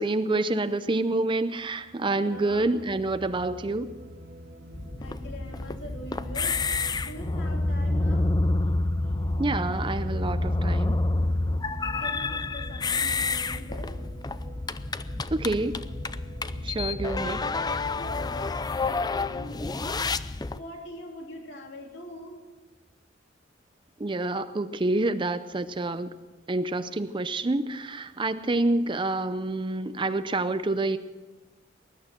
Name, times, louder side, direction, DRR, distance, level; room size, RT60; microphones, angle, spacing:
voice 1, 0.0-3.9 9.4-11.0 15.3-15.8 16.6-17.4 24.0-26.1 26.5-31.0, right 2 dB, 25° right, 11 dB, 0.6 m, -27 dB
voice 2, 2.2-2.7 5.0-6.6 7.0-8.3 12.0-13.9 16.8-17.4 17.8-20.1 20.5-22.4, equal, 70° left, 1 dB, 3.4 m, -43 dB
sound 1, 2.3-18.5, equal, 75° right, 2.2 m, -47 dB
sound 2, 4.7-20.6, left 3 dB, 20° left, 0.5 m, -28 dB
20.5 x 11.5 x 6.0 m, 1.2 s
head